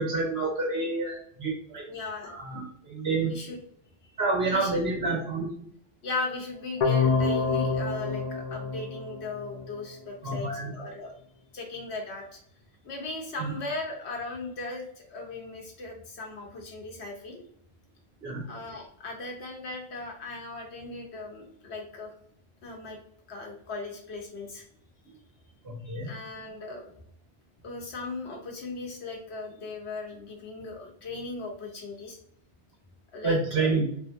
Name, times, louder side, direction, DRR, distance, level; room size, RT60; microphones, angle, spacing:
voice 1, 0.0-1.9 2.2-3.3 4.2-5.5 10.2-10.7 13.4-13.5 18.2-18.4 25.6-26.1 33.2-33.9, right 3 dB, 70° right, 0 dB, 1.4 m, -28 dB
voice 2, 1.9-2.3 3.2-3.6 4.5-5.1 6.0-11.1 11.5-12.4 12.8-14.8 15.1-17.4 18.5-22.1 22.6-23.0 23.3-24.6 25.8-26.9 27.6-32.2 33.1-33.7, left 3 dB, 90° left, 0 dB, 1.2 m, -38 dB
sound 1, 6.8-9.8, left 4 dB, 50° left, 0.5 m, -27 dB
3.3 x 2.6 x 2.5 m, 0.66 s
omnidirectional pair, 1.1 m